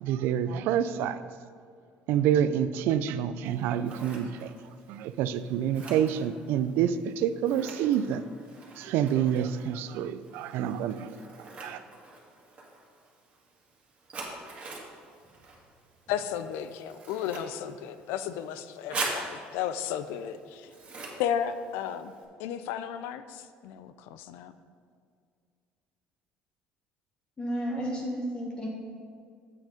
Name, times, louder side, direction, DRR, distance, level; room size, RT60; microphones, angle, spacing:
voice 1, 0.0-1.2 2.1-4.5 4.9-8.3 8.8-11.2 11.6-11.8, right 9 dB, 75° right, 13 dB, 0.4 m, -27 dB
Scissors, 3.5-22.2, right 3 dB, 35° right, 1.8 m, -44 dB
voice 2, 16.1-20.7 21.2-22.1 22.4-24.5, left 9 dB, 80° left, 12 dB, 0.5 m, -34 dB
voice 3, 27.4-28.7, equal, 25° left, -2 dB, 1.3 m, -32 dB
7.7 x 6.2 x 5.0 m, 2.2 s
cardioid pair, 115°, 4 cm